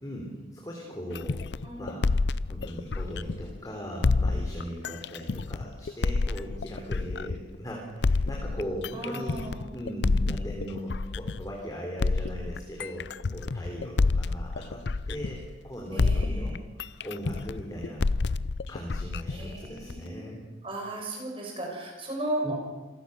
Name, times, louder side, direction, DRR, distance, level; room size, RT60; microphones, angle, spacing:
voice 1, 0.0-1.4 1.8-2.1 2.5-16.6 17.0-18.4 18.7-20.4 22.4-22.5, equal, 20° left, -1 dB, 3.6 m, -39 dB
sound 1, 1.2-3.6 4.0-7.6 8.0-11.6 12.0-15.7 16.0-20.1, left 3 dB, 65° left, 0.6 m, -28 dB
voice 2, 1.6-2.0 8.9-9.7 15.9-16.6 19.3-20.3 20.6-22.5, right 1 dB, 30° right, 0 dB, 6.6 m, -35 dB
27.0 x 16.0 x 6.8 m, 1.2 s
head